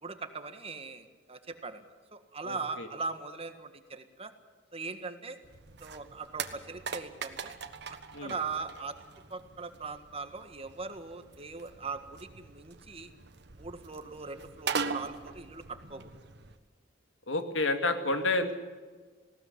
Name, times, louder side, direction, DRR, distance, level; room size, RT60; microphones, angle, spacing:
voice 1, 0.0-1.8 2.1-4.3 4.7-5.4 5.8-7.6 7.9-9.0 9.3-13.1 13.6-16.1, right 4 dB, 30° right, 8 dB, 1.7 m, -40 dB
voice 2, 2.4-2.9 8.1-8.3 17.3-18.6, left 2 dB, 85° left, 7 dB, 2.4 m, -30 dB
sound 1, 5.4-16.6, right 5 dB, 60° right, 1.4 m, -41 dB
19.5 x 17.5 x 9.9 m, 1.4 s
head